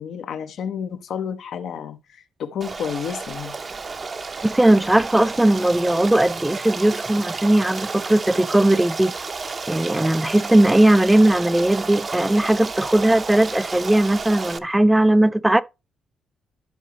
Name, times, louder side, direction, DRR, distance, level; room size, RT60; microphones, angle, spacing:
voice 1, 0.0-3.6, left 7 dB, 70° left, 0.9 m, -31 dB
Stream, 2.6-14.6, right 4 dB, 35° right, 0.7 m, -32 dB
voice 2, 4.4-9.1 9.7-15.6, right 1 dB, 10° right, 0.4 m, -18 dB
12.0 x 5.0 x 3.0 m
cardioid pair, 90°, 0 cm